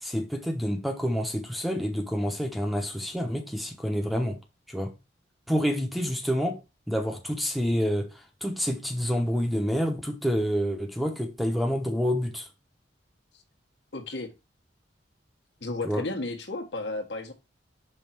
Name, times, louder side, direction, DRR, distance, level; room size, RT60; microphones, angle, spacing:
voice 1, 0.0-4.4 4.7-4.9 5.5-6.6 6.9-12.5 15.8-16.0, equal, ahead, 0.9 m, -28 dB
voice 2, 13.9-14.3 15.6-17.3, left 2 dB, 65° left, 1.4 m, -33 dB
5.6 x 4.0 x 5.9 m
head